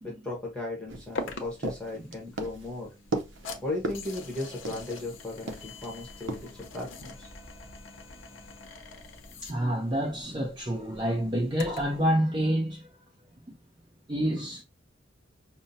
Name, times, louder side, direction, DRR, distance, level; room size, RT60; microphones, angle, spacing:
voice 1, 0.0-2.9 3.6-7.3, left 2 dB, 5° left, 1.0 m, -36 dB
sound 1, 0.9-5.1 5.5-5.9 6.3-6.5, right 2 dB, 75° right, 0.7 m, -36 dB
sound 2, 1.2-12.0, left 3 dB, 75° left, 0.7 m, -44 dB
voice 2, 9.4-13.0 13.5-13.6 14.1-14.6, equal, 25° right, 0.6 m, -28 dB
5.5 x 2.1 x 2.6 m
head